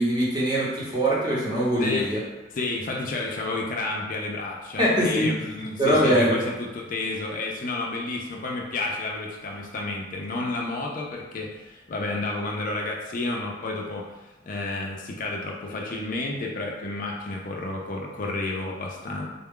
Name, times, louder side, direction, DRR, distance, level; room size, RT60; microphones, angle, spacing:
voice 1, 0.0-2.2 4.8-5.3 5.8-6.4, equal, 25° right, -6 dB, 0.9 m, -22 dB
voice 2, 1.8-2.1 2.5-14.1 14.4-19.3, left 2 dB, 45° left, -1 dB, 0.4 m, -31 dB
3.8 x 2.3 x 3.6 m, 1.1 s
head